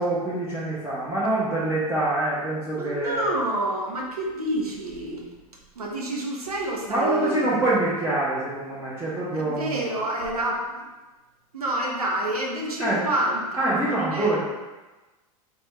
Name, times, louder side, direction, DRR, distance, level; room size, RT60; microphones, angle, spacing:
voice 1, 0.0-3.3 6.9-9.8 12.8-13.0 13.6-14.4, right 2 dB, 10° right, -11 dB, 1.0 m, -25 dB
voice 2, 2.8-5.3 5.8-7.6 9.3-10.8 11.5-14.3, right 1 dB, 80° right, -1 dB, 0.8 m, -28 dB
3.4 x 3.3 x 3.2 m, 1.2 s
figure-of-eight pair, 85°, 19 cm